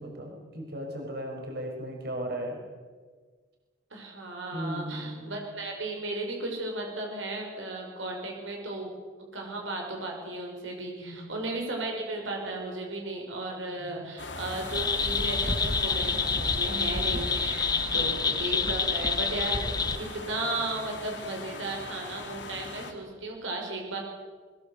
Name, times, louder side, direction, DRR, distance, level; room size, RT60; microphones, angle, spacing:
voice 1, 0.0-2.6 4.5-5.4 11.0-11.3 13.8-14.1 17.7-18.3, right 1 dB, 55° right, 1 dB, 5.7 m, -37 dB
voice 2, 3.9-8.9 9.3-24.0, right 2 dB, 85° right, 1 dB, 5.8 m, -35 dB
sound 1, 14.2-22.9, left 3 dB, 70° left, 2.9 m, -40 dB
sound 2, 14.7-20.0, left 4 dB, 20° left, 1.2 m, -27 dB
22.5 x 20.5 x 8.1 m, 1.5 s
head